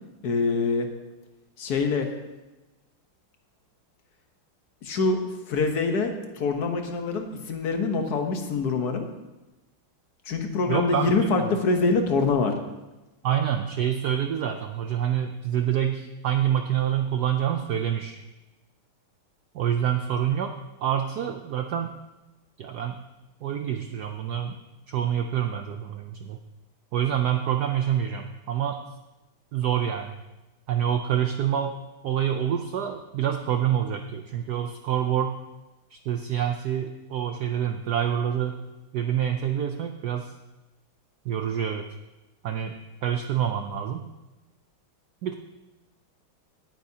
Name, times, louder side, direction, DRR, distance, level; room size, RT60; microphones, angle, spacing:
voice 1, 0.2-0.9 1.6-2.1 4.8-5.2 5.5-9.1 10.3-12.6, left 4 dB, 55° left, 5 dB, 1.4 m, -25 dB
voice 2, 10.7-11.3 13.2-18.2 19.5-20.5 20.8-21.9 22.6-23.0 23.4-24.6 24.9-26.4 26.9-28.8 29.5-30.1 30.7-31.8 32.0-35.4 35.9-38.6 38.9-40.3 41.2-41.9 42.4-42.7 43.0-44.0 45.2-45.3, right 9 dB, 75° right, 5 dB, 0.9 m, -27 dB
17.5 x 9.0 x 2.8 m, 1.1 s
omnidirectional pair, 2.3 m